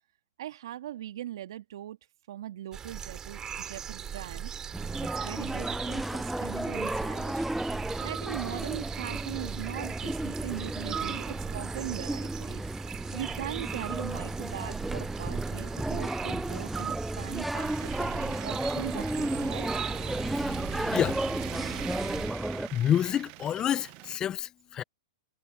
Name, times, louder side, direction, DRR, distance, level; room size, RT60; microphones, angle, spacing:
voice 1, 0.4-2.0 2.3-4.5 5.2-7.5 8.0-12.6 13.1-19.7, right 12 dB, 65° right, 2.1 m, -40 dB
sound 1, 2.7-22.3, right 8 dB, 25° right, 2.9 m, -39 dB
sound 2, 4.7-22.7, right 1 dB, 5° right, 0.4 m, -33 dB
sound 3, 17.6-24.2, right 26 dB, 45° right, 0.8 m, -43 dB
voice 2, 22.7-24.8, left 10 dB, 25° left, 0.8 m, -28 dB
hypercardioid pair, 110°, 3 cm